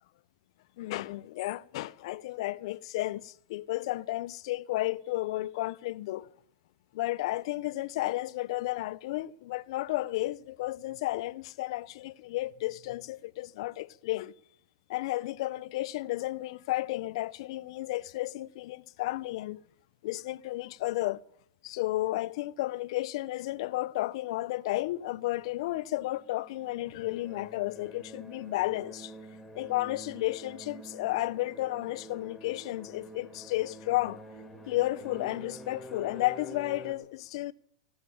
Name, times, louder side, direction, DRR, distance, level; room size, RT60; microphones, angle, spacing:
voice 1, 0.8-6.3 6.9-14.3 14.9-19.6 20.0-21.2 21.6-29.1 29.5-34.2 34.7-37.5, left 17 dB, 55° left, 0.5 m, -33 dB
sound 1, 25.7-36.9, equal, 5° left, 1.8 m, -48 dB
15.5 x 8.8 x 8.6 m
supercardioid pair, 145°, 4 cm